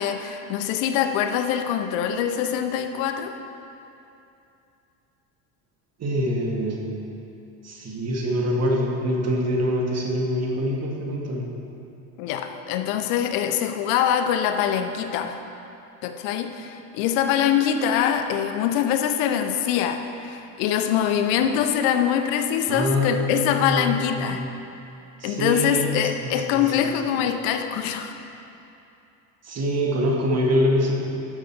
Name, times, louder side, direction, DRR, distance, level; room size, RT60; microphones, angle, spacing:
voice 1, 0.0-3.4 12.2-15.4 16.0-24.4 25.2-28.1, left 9 dB, 80° left, 7 dB, 0.8 m, -24 dB
voice 2, 6.0-7.1 7.6-11.5 22.7-24.5 25.2-26.6 29.4-30.9, equal, 40° right, -1 dB, 1.7 m, -25 dB
11.0 x 6.5 x 4.4 m, 2.8 s
supercardioid pair, 90°, 41 cm